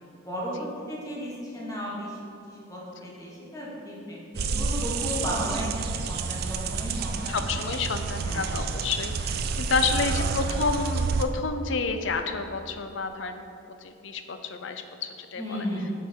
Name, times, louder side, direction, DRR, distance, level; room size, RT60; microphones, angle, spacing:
voice 1, 0.2-7.4 8.1-8.6 10.4-10.5 15.3-15.9, equal, 15° left, -5 dB, 1.6 m, -34 dB
sound 1, 4.3-11.2, right 4 dB, 50° right, 0.4 m, -29 dB
voice 2, 7.3-13.4 13.8-15.7, left 4 dB, 70° left, 8 dB, 0.6 m, -30 dB
7.3 x 5.8 x 4.6 m, 2.7 s
head